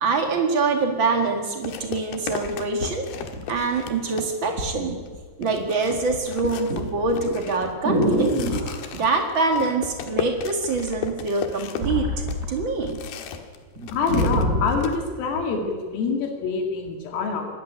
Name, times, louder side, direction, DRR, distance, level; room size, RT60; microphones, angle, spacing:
voice 1, 0.0-3.1 3.5-5.0 5.4-8.3 8.9-12.1 12.5-13.0, right 3 dB, 80° right, 4 dB, 1.1 m, -24 dB
sound 1, 0.7-0.8 1.6-4.6 5.1-5.2 5.4-13.6 13.8-15.0, left 7 dB, 65° left, 2.9 m, -35 dB
sound 2, 1.8-1.9 2.4-3.9 4.6-4.8 5.1-5.6 5.9-8.8 9.9-10.4 10.7-13.0 13.3-13.4 13.8-14.9 15.5-15.6, equal, 15° right, 3.9 m, -26 dB
voice 2, 13.9-17.5, left 4 dB, 85° left, 3 dB, 5.0 m, -26 dB
25.0 x 13.5 x 9.9 m, 1.5 s
omnidirectional pair, 5.8 m